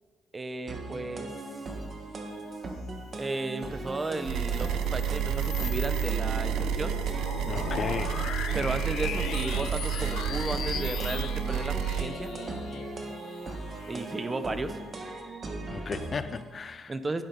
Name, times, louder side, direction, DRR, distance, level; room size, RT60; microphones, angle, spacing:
voice 1, 0.3-1.3 3.2-7.0 8.5-12.3 13.9-14.8 16.9-17.2, right 2 dB, 25° right, 0.8 m, -34 dB
sound 1, 0.7-16.4, right 2 dB, 40° right, 1.6 m, -39 dB
sound 2, 3.8-14.7, left 8 dB, 75° left, 0.7 m, -39 dB
sound 3, 4.2-12.1, right 9 dB, 85° right, 0.6 m, -30 dB
voice 2, 7.5-8.2 15.7-16.9, left 5 dB, 40° left, 0.4 m, -35 dB
12.0 x 10.5 x 4.0 m
cardioid pair, 90°, 0 cm